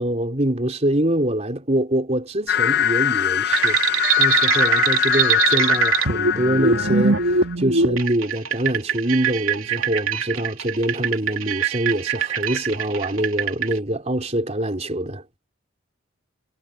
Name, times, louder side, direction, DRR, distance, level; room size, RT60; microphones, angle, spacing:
voice 1, 0.0-7.3 7.6-15.2, right 1 dB, 30° right, 3.7 m, -24 dB
sound 1, 2.5-7.5, left 11 dB, 50° left, 0.4 m, -23 dB
sound 2, 3.5-13.7, right 5 dB, 70° right, 3.0 m, -22 dB
head